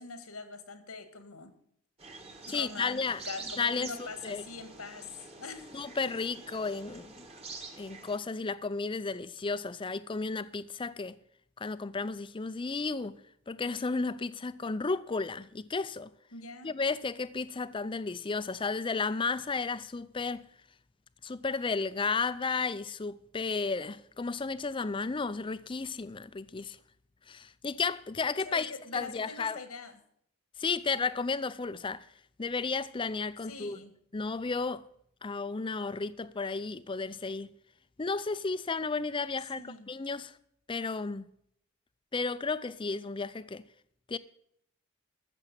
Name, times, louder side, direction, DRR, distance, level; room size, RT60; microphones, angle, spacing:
voice 1, 0.0-1.6 2.4-5.7 16.3-16.7 28.4-30.0 33.4-34.0 39.5-39.9, left 4 dB, 90° left, 1.8 m, -43 dB
sound 1, 2.0-8.2, right 3 dB, 30° right, 1.7 m, -47 dB
voice 2, 2.5-3.2 3.6-4.4 5.7-7.3 7.8-11.2 11.6-13.2 13.5-16.1 16.6-20.4 21.2-26.8 27.3-29.6 30.6-32.1 32.4-33.8 34.1-34.8 35.2-37.5 38.0-40.3 40.7-41.2 42.1-43.6 44.1-44.2, left 4 dB, 25° left, 0.5 m, -33 dB
14.0 x 7.1 x 6.9 m
head